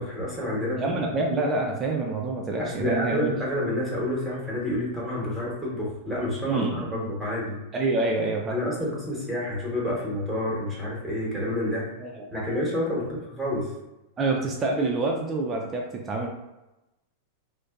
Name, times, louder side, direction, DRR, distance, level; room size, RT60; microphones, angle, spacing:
voice 1, 0.0-1.3 2.6-7.6 8.5-11.8 12.3-13.7, left 1 dB, 5° right, -7 dB, 1.0 m, -29 dB
voice 2, 0.8-3.3 6.4-7.1 7.7-8.6 12.0-12.5 14.2-16.3, right 2 dB, 25° right, 0 dB, 0.3 m, -27 dB
2.6 x 2.1 x 2.3 m, 0.98 s
hypercardioid pair, 105°, 0 cm